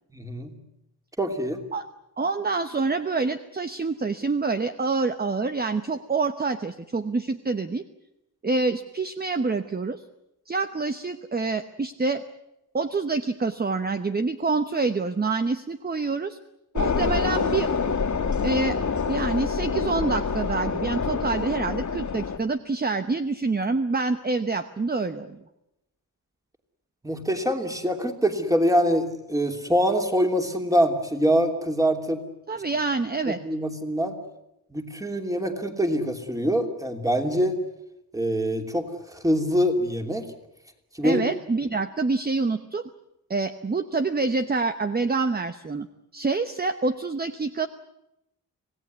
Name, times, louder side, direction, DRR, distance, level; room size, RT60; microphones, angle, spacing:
voice 1, 0.1-0.6 1.2-1.6 27.0-32.2 33.3-34.2 34.7-37.6 38.1-40.3 40.9-41.2, equal, 10° right, 5 dB, 3.0 m, -24 dB
voice 2, 2.2-7.8 8.4-10.0 10.5-12.2 12.7-16.4 16.7-17.7 18.4-18.8 19.1-25.4 32.5-33.4 41.0-42.8 43.3-45.9 46.1-47.7, right 3 dB, 25° right, 9 dB, 1.0 m, -26 dB
sound 1, 16.8-22.4, left 5 dB, 50° left, 2.3 m, -26 dB
26.5 x 17.5 x 9.5 m, 0.87 s
wide cardioid pair, 115°, 36 cm